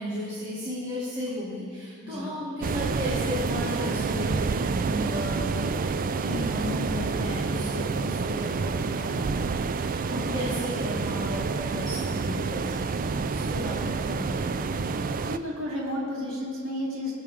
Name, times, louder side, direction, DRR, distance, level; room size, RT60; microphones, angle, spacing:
voice 1, 0.0-5.7 6.0-15.0, left 1 dB, 20° right, -10 dB, 2.9 m, -35 dB
sound 1, 2.6-15.4, right 4 dB, 40° right, 0.4 m, -28 dB
voice 2, 15.2-17.1, left 1 dB, 65° right, -6 dB, 3.4 m, -32 dB
22.0 x 8.4 x 3.7 m, 2.2 s
head